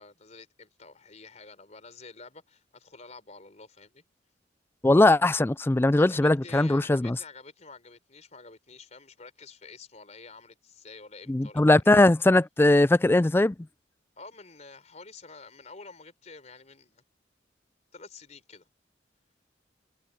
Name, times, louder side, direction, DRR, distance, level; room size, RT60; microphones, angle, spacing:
voice 1, 0.0-4.0 5.9-12.0 14.2-17.0 17.9-18.6, left 4 dB, 40° left, 3.9 m, -49 dB
voice 2, 4.8-7.2 11.3-13.5, left 2 dB, 10° left, 0.3 m, -20 dB
head